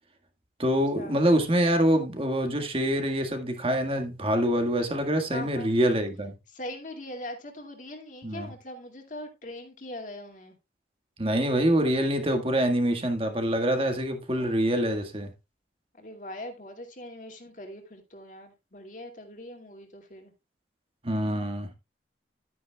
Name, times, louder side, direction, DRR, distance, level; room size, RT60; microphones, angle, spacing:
voice 1, 0.6-6.3 8.2-8.5 11.2-15.3 21.0-21.7, equal, 30° right, 1.7 m, -25 dB
voice 2, 5.3-5.7 6.5-10.5 14.3-14.5 16.0-20.3, left 1 dB, 45° left, 2.3 m, -41 dB
12.0 x 9.4 x 2.3 m
head